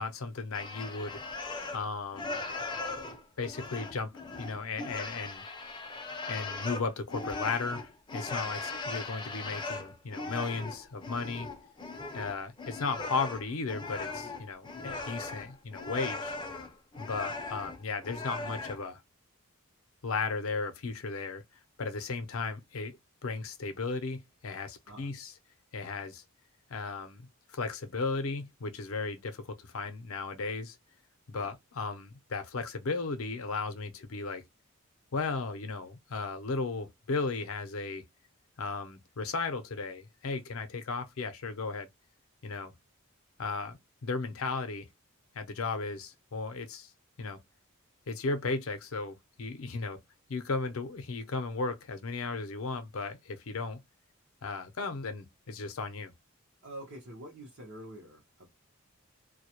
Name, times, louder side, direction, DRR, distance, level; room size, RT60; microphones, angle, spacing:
voice 1, 0.0-2.4 3.4-5.4 6.3-11.5 12.1-16.3 17.0-19.0 20.0-21.4 21.8-23.0 23.2-25.4 25.7-26.2 26.7-30.8 31.3-34.4 35.1-38.0 38.6-41.9 42.4-42.7 43.4-44.9 45.3-46.9 47.2-47.4 48.1-50.0 50.3-53.8 54.4-56.1, left 4 dB, 75° left, 0.5 m, -35 dB
sound 1, 0.5-1.9 2.1-18.8, left 3 dB, 20° left, 0.4 m, -39 dB
voice 2, 8.3-8.7 24.9-25.1 31.3-31.5 56.6-58.5, right 1 dB, 55° right, 0.7 m, -47 dB
2.2 x 2.0 x 2.8 m
head